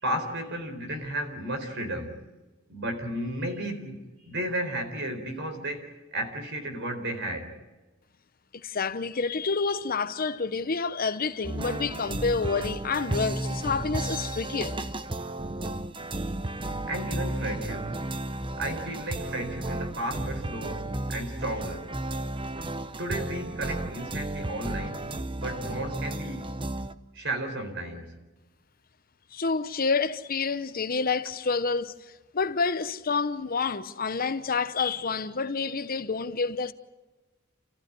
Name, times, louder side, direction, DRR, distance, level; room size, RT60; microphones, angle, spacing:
voice 1, 0.0-2.2 2.7-7.5 16.9-18.0 18.6-21.9 23.0-25.1 25.4-26.5 27.1-28.1, right 1 dB, 60° right, 4.3 m, -33 dB
voice 2, 8.5-15.0 29.3-36.7, left 4 dB, 45° left, 0.9 m, -28 dB
sound 1, 11.4-26.9, right 1 dB, 25° right, 0.8 m, -33 dB
29.5 x 15.0 x 9.7 m
head